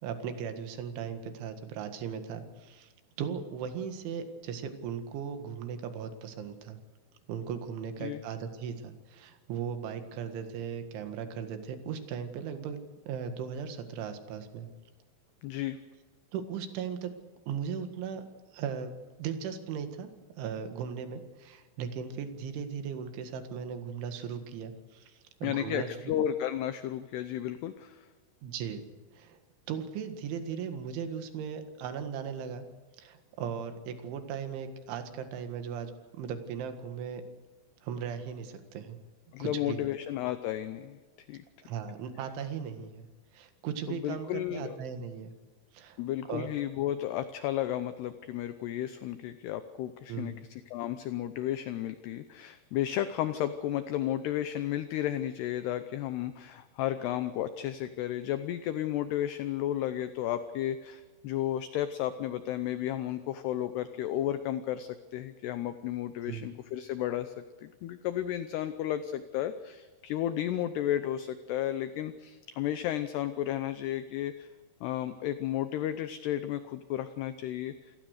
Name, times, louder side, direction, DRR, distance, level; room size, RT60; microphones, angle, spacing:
voice 1, 0.0-2.9 3.2-6.8 7.3-12.8 13.1-14.7 16.3-17.1 17.5-18.2 18.5-20.1 20.4-26.1 28.4-29.4 29.7-32.7 33.0-37.2 37.8-39.0 39.4-39.9 41.6-43.1 43.3-45.3 45.7-46.0 46.3-46.5 50.1-50.4 66.2-66.5, right 7 dB, 75° right, 8 dB, 4.1 m, -37 dB
voice 2, 15.4-15.8 25.4-28.1 39.3-41.0 41.3-41.4 43.9-44.8 46.0-67.3 67.6-74.5 74.8-77.9, left 12 dB, 80° left, 11 dB, 2.5 m, -33 dB
28.0 x 19.0 x 6.6 m, 1.4 s
omnidirectional pair, 5.6 m